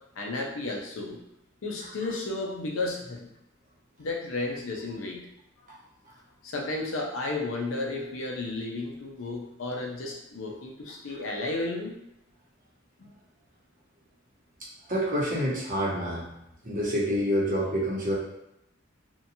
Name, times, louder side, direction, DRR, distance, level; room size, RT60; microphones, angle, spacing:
voice 1, 0.2-1.2 1.6-3.3 4.0-5.3 6.4-12.0, left 2 dB, 70° left, 0 dB, 0.5 m, -33 dB
voice 2, 14.9-16.3 16.6-18.2, equal, 40° right, -5 dB, 0.8 m, -27 dB
2.8 x 2.2 x 2.6 m, 0.85 s
head